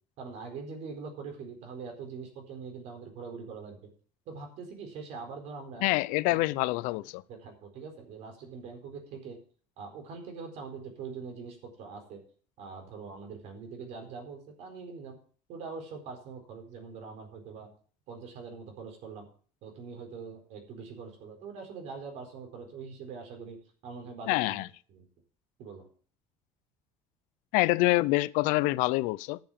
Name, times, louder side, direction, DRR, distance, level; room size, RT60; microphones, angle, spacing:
voice 1, 0.2-3.9 4.3-5.9 6.2-6.4 7.3-9.4 9.8-12.2 12.6-15.2 15.5-17.7 18.1-19.3 19.6-23.6 23.8-24.6 24.9-25.0 25.6-25.9, right 5 dB, 60° right, 4.3 m, -43 dB
voice 2, 5.8-7.2 24.3-24.7 27.5-29.4, left 20 dB, 80° left, 0.5 m, -26 dB
11.5 x 7.1 x 7.3 m
cardioid pair, 175°, 13 cm